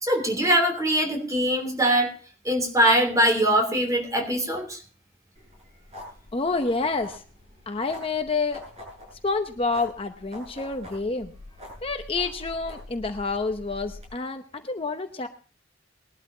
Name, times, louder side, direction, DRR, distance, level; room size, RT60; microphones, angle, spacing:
voice 1, 0.0-2.1 2.4-4.8, equal, 20° right, 4 dB, 3.2 m, -22 dB
sound 1, 5.3-14.1, left 1 dB, 35° right, 7.7 m, -44 dB
voice 2, 6.3-7.2 7.7-8.6 9.2-11.3 11.8-15.3, left 3 dB, 30° left, 6 dB, 0.8 m, -28 dB
21.0 x 12.0 x 2.8 m, 0.38 s
head